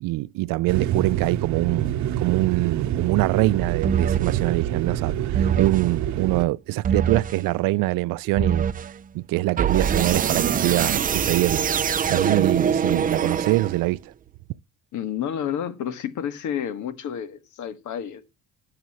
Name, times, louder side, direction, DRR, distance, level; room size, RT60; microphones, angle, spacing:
voice 1, 0.0-8.7 9.1-11.6 12.1-14.1, right 19 dB, 80° right, 0.5 m, -24 dB
sound 1, 0.7-6.4, right 11 dB, 60° right, 0.9 m, -26 dB
sound 2, 3.8-4.4 5.3-5.9 6.8-7.4 8.4-8.9 9.6-14.0, right 7 dB, 25° right, 0.5 m, -23 dB
voice 2, 14.9-18.2, left 9 dB, 60° left, 1.6 m, -30 dB
19.0 x 6.8 x 3.0 m
cardioid pair, 135°, 33 cm